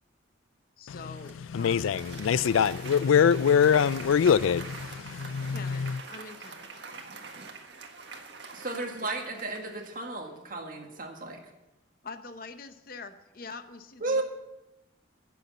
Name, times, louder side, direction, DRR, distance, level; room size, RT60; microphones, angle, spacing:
voice 1, 0.8-1.9 5.5-6.8 12.0-14.2, left 4 dB, 45° left, 0.8 m, -44 dB
Applause, 1.2-10.1, right 4 dB, 60° right, 1.6 m, -45 dB
voice 2, 1.5-6.0, left 7 dB, 90° left, 0.4 m, -24 dB
voice 3, 8.5-11.4 14.0-14.2, right 2 dB, 45° right, 1.8 m, -33 dB
15.5 x 7.1 x 7.2 m
head